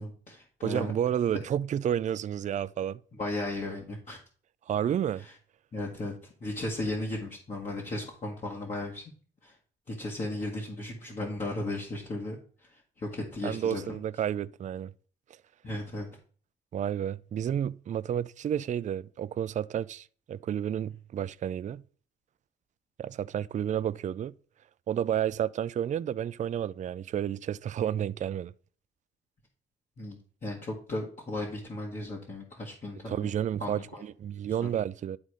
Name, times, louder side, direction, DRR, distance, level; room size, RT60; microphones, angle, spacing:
voice 1, 0.0-0.9 3.1-4.2 5.2-5.3 5.7-6.1 6.4-9.0 9.4-9.6 9.9-14.0 15.6-16.1 30.0-33.3 33.6-34.0 34.5-34.7, left 2 dB, 40° left, 1.8 m, -36 dB
voice 2, 0.6-3.0 4.7-5.2 13.4-14.9 16.7-21.8 23.0-24.3 24.9-28.5 33.1-35.2, right 9 dB, 40° right, 0.4 m, -31 dB
10.5 x 4.1 x 4.9 m
cardioid pair, 90°, 20 cm